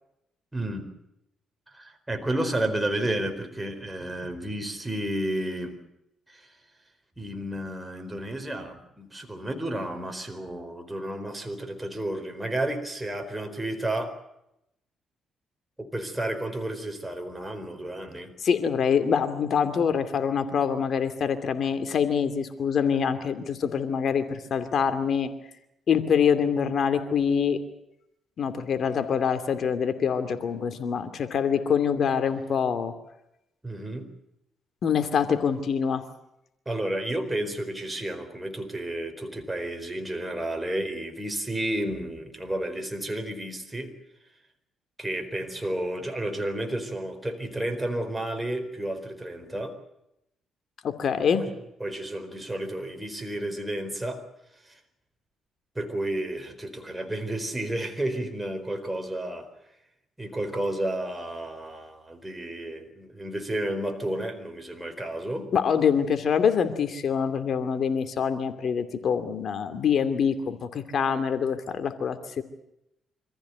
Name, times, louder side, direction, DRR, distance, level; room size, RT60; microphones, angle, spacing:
voice 1, 0.5-0.9 1.7-5.8 6.3-6.5 7.2-14.1 15.8-18.3 33.6-34.1 36.7-43.9 45.0-49.7 51.3-51.5 51.8-54.2 54.7-54.8 55.7-59.5 60.2-65.5, right 1 dB, 10° right, 5 dB, 4.4 m, -31 dB
voice 2, 18.4-25.3 25.9-27.6 28.4-32.9 34.8-36.0 50.8-51.4 65.5-72.4, left 7 dB, 60° left, 9 dB, 2.6 m, -25 dB
26.0 x 15.0 x 9.4 m, 0.82 s
cardioid pair, 90°, 0 cm